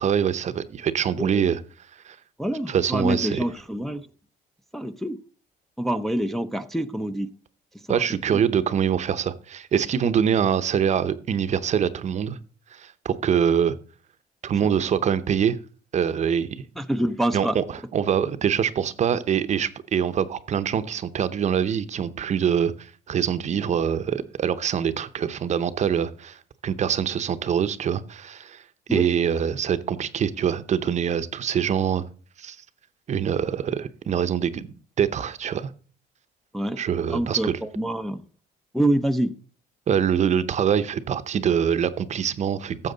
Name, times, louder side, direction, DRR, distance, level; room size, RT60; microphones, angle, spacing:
voice 1, 0.0-1.6 2.0-2.2 2.7-3.4 7.9-12.4 12.7-13.8 14.4-15.6 15.9-16.6 17.3-28.6 28.9-32.0 32.4-32.6 33.1-34.7 35.0-35.7 36.8-37.6 39.9-42.9, right 8 dB, 45° right, 12 dB, 0.7 m, -24 dB
voice 2, 2.4-4.1 4.7-5.2 5.8-7.3 7.9-8.4 16.8-17.6 28.9-29.0 36.5-36.8 37.1-38.2 38.7-39.3, right 1 dB, ahead, 6 dB, 0.5 m, -26 dB
13.5 x 7.2 x 3.9 m, 0.39 s
cardioid pair, 110°, 17 cm